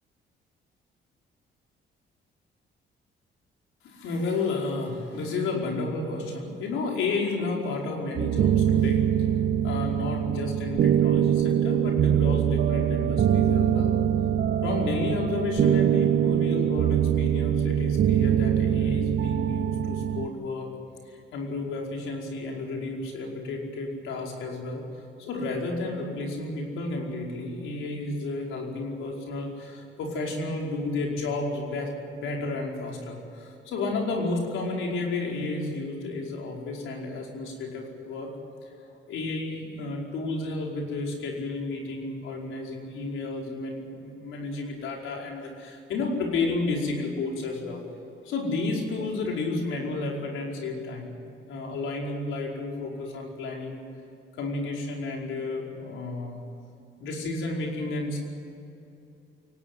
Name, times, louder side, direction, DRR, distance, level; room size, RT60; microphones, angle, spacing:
voice 1, 3.8-9.0 9.6-14.0 14.6-20.7 21.1-24.8 25.2-38.3 39.1-47.8 48.2-51.1 51.5-53.8 54.4-56.4 57.0-58.2, left 3 dB, 85° left, 0 dB, 5.1 m, -32 dB
sound 1, 8.2-20.3, right 10 dB, 60° right, 0.8 m, -23 dB
23.0 x 18.5 x 9.5 m, 2.7 s
cardioid pair, 90°, 20 cm